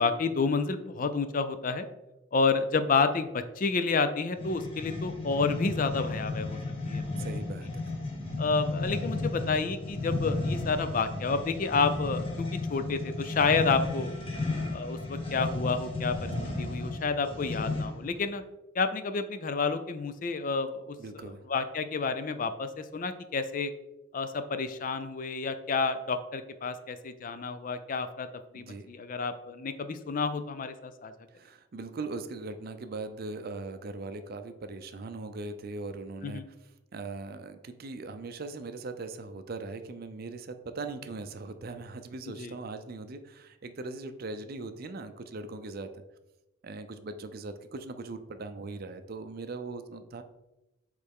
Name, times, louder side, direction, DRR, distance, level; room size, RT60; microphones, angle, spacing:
voice 1, 0.0-1.9 2.3-6.6 6.9-7.0 8.4-14.1 14.7-16.3 16.6-18.4 18.7-23.7 24.1-28.3 28.5-31.1 36.2-36.4 42.4-42.5, left 4 dB, 45° left, 10 dB, 0.4 m, -30 dB
sound 1, 4.3-18.1, left 2 dB, 30° left, 1.1 m, -33 dB
voice 2, 7.2-8.0 21.0-21.4 28.5-28.9 31.3-36.5 36.9-46.0 46.6-50.2, right 3 dB, 50° right, 9 dB, 0.5 m, -40 dB
8.1 x 3.3 x 3.6 m, 0.98 s
head